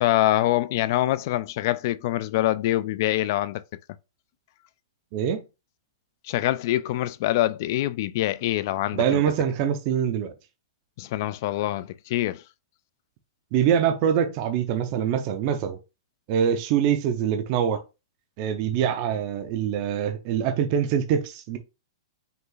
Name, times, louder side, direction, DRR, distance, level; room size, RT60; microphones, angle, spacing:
voice 1, 0.0-3.6 6.2-9.2 11.0-12.4, left 15 dB, 40° left, 0.3 m, -25 dB
voice 2, 5.1-5.4 8.9-10.3 13.5-15.8 16.3-17.8 18.4-21.6, right 8 dB, 30° right, 0.5 m, -24 dB
5.4 x 2.3 x 3.9 m
hypercardioid pair, 170°, 3 cm